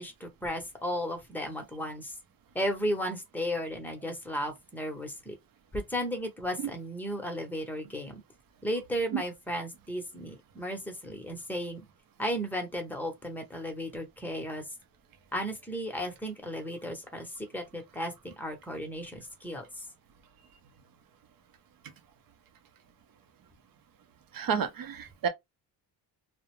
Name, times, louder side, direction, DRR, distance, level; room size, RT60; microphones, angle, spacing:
voice 1, 0.0-2.1 2.5-5.4 5.7-8.2 8.6-11.8 12.2-14.6 15.3-19.8, equal, 5° left, 0.8 m, -34 dB
voice 2, 24.3-25.3, right 7 dB, 55° right, 0.7 m, -30 dB
2.3 x 2.1 x 3.1 m
cardioid pair, 125°, 42 cm